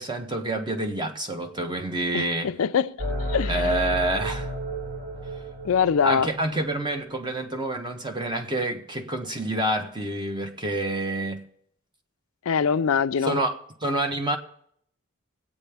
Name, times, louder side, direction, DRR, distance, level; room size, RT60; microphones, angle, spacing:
voice 1, 0.0-2.5 3.5-4.5 6.0-11.4 13.2-14.4, right 1 dB, 20° right, 0.9 m, -28 dB
voice 2, 2.1-3.9 5.6-6.3 12.5-13.4, left 6 dB, 75° left, 0.4 m, -24 dB
sound 1, 3.0-7.0, equal, 50° right, 1.7 m, -32 dB
21.0 x 8.5 x 3.4 m
head